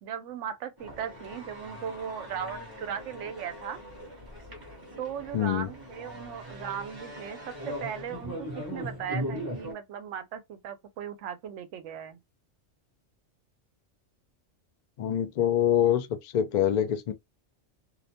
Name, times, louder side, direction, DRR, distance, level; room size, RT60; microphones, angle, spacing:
voice 1, 0.0-3.8 5.0-12.2, right 8 dB, 75° right, 0.9 m, -37 dB
sound 1, 0.8-9.7, equal, 20° right, 0.8 m, -40 dB
voice 2, 5.3-5.7 15.0-17.1, left 10 dB, 75° left, 0.4 m, -25 dB
2.6 x 2.1 x 2.7 m
omnidirectional pair, 1.3 m